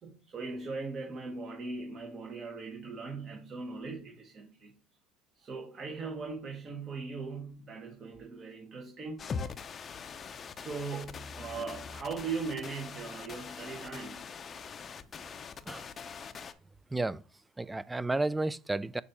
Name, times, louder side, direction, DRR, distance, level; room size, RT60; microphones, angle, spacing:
voice 1, 0.0-4.7 5.3-9.3 10.1-14.3, right 4 dB, 40° right, 1.3 m, -39 dB
sound 1, 9.2-16.5, left 5 dB, 40° left, 0.6 m, -42 dB
voice 2, 16.9-17.2 17.6-19.0, right 2 dB, 15° right, 0.3 m, -32 dB
6.6 x 2.7 x 5.7 m
hypercardioid pair, 80°, 0 cm